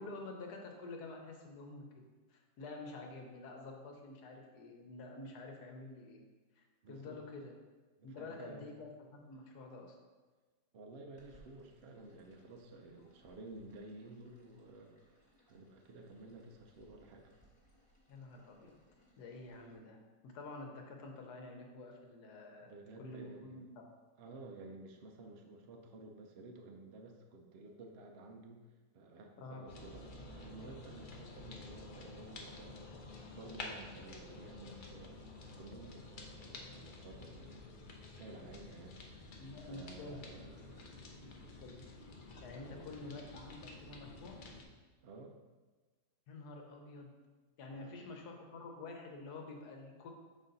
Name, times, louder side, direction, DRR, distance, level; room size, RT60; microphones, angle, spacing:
voice 1, 0.0-1.9 2.3-6.2 6.6-7.5 8.0-10.0 18.1-18.8 19.2-20.0 20.2-22.7 23.0-23.8 29.4-29.6 39.4-40.3 41.1-41.3 41.6-41.8 42.4-44.4 46.3-47.1 47.6-50.1, left 3 dB, 70° left, 2 dB, 1.3 m, -49 dB
voice 2, 6.8-7.2 8.0-8.8 10.7-15.0 15.5-17.3 22.6-23.6 24.2-28.6 28.9-32.8 33.3-35.2 35.6-37.7 38.2-41.0 42.5-43.0 45.0-45.4 47.7-48.1, right 2 dB, 75° right, 2 dB, 0.6 m, -53 dB
sound 1, 11.2-19.8, right 1 dB, 5° left, 1.2 m, -68 dB
sound 2, 29.7-44.6, left 2 dB, 85° left, 0.4 m, -51 dB
5.9 x 4.1 x 3.9 m, 1.3 s
omnidirectional pair, 1.8 m